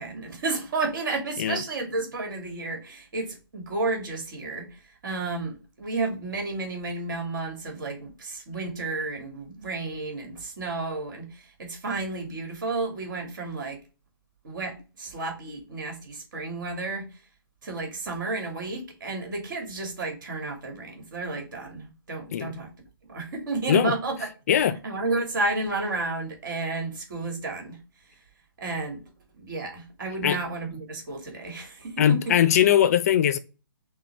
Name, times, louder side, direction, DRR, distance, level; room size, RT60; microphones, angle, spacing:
voice 1, 0.0-13.8 14.4-17.2 17.6-22.7 23.1-24.3 24.5-28.2 28.6-29.0 29.3-32.4, right 3 dB, 60° right, 2.0 m, -32 dB
voice 2, 24.5-24.8 30.2-30.4 32.0-33.4, left 10 dB, 40° left, 0.5 m, -20 dB
6.0 x 2.3 x 3.4 m
hypercardioid pair, 155°, 12 cm